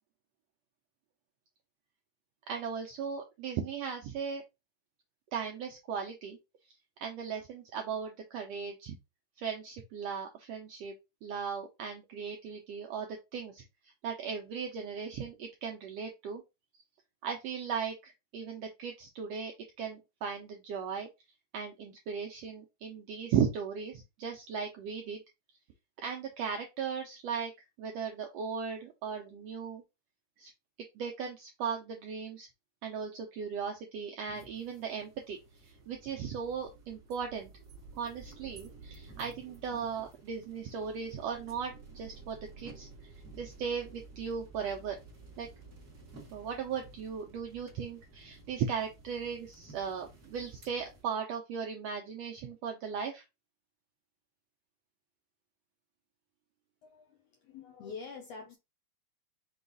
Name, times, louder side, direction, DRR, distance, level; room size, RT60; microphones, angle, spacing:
voice 1, 2.5-4.4 5.3-6.4 7.0-9.0 9.4-10.9 11.2-13.6 14.0-16.4 17.2-19.5 19.8-21.1 21.5-25.2 26.0-27.5 27.8-29.8 30.4-30.5 30.9-32.5 32.8-35.4 35.6-37.5 38.0-43.1 43.3-45.0 45.4-45.5 46.3-53.2, right 6 dB, 85° right, 1.5 m, -37 dB
sound 1, 34.3-51.0, right 3 dB, 40° right, 1.1 m, -53 dB
voice 2, 56.8-58.6, left 5 dB, 75° left, 1.5 m, -46 dB
5.5 x 2.3 x 3.9 m
omnidirectional pair, 3.6 m